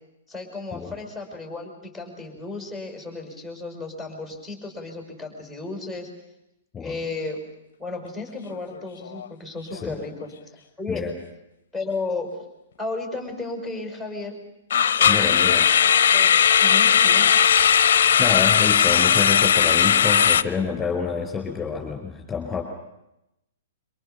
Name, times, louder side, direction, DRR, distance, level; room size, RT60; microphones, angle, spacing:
voice 1, 0.3-6.1 6.8-7.4 7.8-10.3 10.8-11.1 11.7-12.4 12.8-14.4 15.0-15.6 15.8-16.3 16.6-17.3, left 3 dB, 5° right, 2 dB, 5.9 m, -33 dB
sound 1, 8.5-8.8 9.1-9.3 9.8-9.9 14.7-20.4, left 8 dB, 60° left, 0.8 m, -18 dB
voice 2, 15.1-15.7 17.8-22.6, left 5 dB, 15° left, 1 dB, 5.0 m, -28 dB
26.5 x 24.5 x 7.0 m, 0.86 s
figure-of-eight pair, 115°, 0 cm